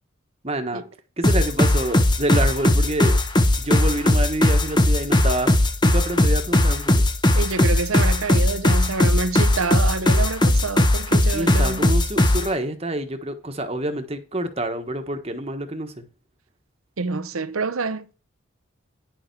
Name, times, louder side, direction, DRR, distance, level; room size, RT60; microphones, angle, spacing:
voice 1, 0.4-0.8 1.2-3.2 3.6-5.5 5.8-7.0 11.3-16.0, right 1 dB, 30° right, 1.3 m, -27 dB
sound 1, 1.2-12.5, left 1 dB, 20° left, 1.0 m, -18 dB
voice 2, 7.3-11.9 17.0-18.1, right 4 dB, 90° right, 0.8 m, -27 dB
10.0 x 6.9 x 4.7 m
head